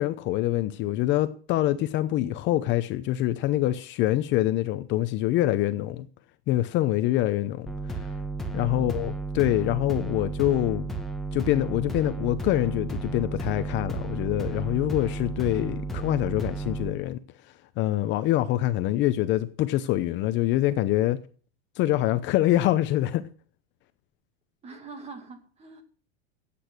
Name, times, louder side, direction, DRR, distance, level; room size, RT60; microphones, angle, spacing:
voice 1, 0.0-6.1 6.5-8.1 8.5-10.9 11.3-17.2 17.8-21.2 21.8-23.2, left 14 dB, 35° left, 0.7 m, -25 dB
sound 1, 7.7-16.9, right 3 dB, ahead, 1.7 m, -33 dB
voice 2, 8.6-9.1 24.6-25.8, right 4 dB, 20° right, 2.3 m, -44 dB
15.5 x 8.6 x 6.1 m
supercardioid pair, 150°, 31 cm